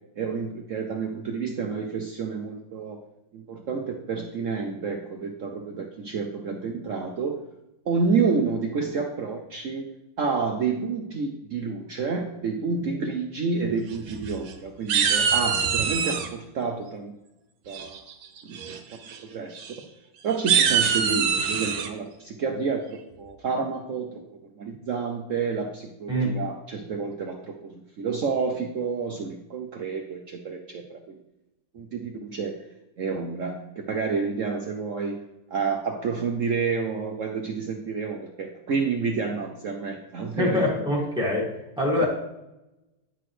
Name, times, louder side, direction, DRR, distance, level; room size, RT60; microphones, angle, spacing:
voice 1, 0.2-3.0 3.3-7.4 7.9-9.9 10.2-17.1 17.7-18.0 18.4-18.8 19.2-19.7 20.2-24.2 24.6-31.2 31.7-32.5 33.0-33.6 33.9-35.2 35.5-40.7, right 5 dB, 65° right, 3 dB, 0.7 m, -29 dB
sound 1, 13.9-14.5 14.9-16.3 17.7-18.1 18.5-18.8 19.0-19.2 19.6-19.7 20.3-21.9, right 7 dB, 85° right, 1.6 m, -24 dB
voice 2, 40.4-41.5 41.8-42.1, left 1 dB, ahead, -5 dB, 2.1 m, -24 dB
9.8 x 5.9 x 3.2 m, 0.91 s
omnidirectional pair, 2.1 m